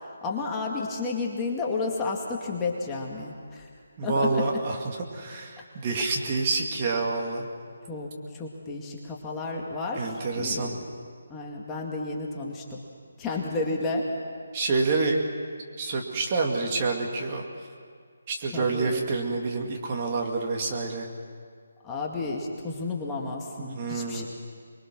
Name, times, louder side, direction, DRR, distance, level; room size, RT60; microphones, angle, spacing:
voice 1, 0.2-3.7 4.0-4.4 7.9-10.8 11.3-12.8 13.2-14.1 18.5-19.1 21.8-24.2, left 3 dB, 15° left, -2 dB, 2.1 m, -32 dB
voice 2, 4.0-7.5 9.9-10.7 14.5-15.2 15.8-17.4 18.3-21.1 23.6-24.3, right 3 dB, 30° right, 1 dB, 2.4 m, -28 dB
25.0 x 22.5 x 6.2 m, 2.1 s
figure-of-eight pair, 155°, 0 cm